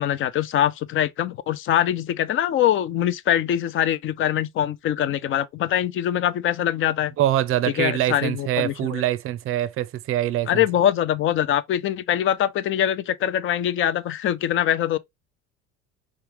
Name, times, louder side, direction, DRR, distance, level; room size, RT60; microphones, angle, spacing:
voice 1, 0.0-7.1 7.8-9.0 10.5-15.0, left 11 dB, 35° left, 0.5 m, -23 dB
voice 2, 7.2-10.6, right 13 dB, 35° right, 0.6 m, -24 dB
5.5 x 2.4 x 3.0 m
figure-of-eight pair, 60°, 37 cm